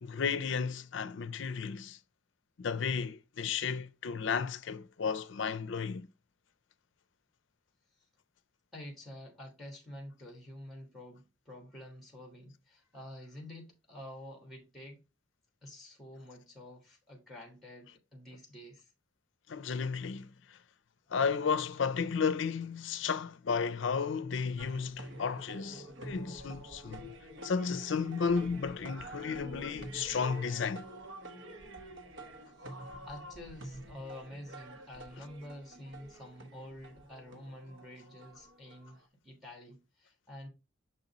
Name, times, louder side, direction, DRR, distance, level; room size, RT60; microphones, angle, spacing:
voice 1, 0.0-2.0 2.6-6.1 19.5-20.6 21.1-27.1 27.4-30.9, left 5 dB, 65° left, 0.5 m, -33 dB
voice 2, 8.7-15.0 15.6-18.9 32.6-32.8 33.1-40.5, left 1 dB, ahead, 1.5 m, -49 dB
sound 1, 24.6-39.1, right 1 dB, 70° right, 1.0 m, -48 dB
6.7 x 3.9 x 4.0 m
head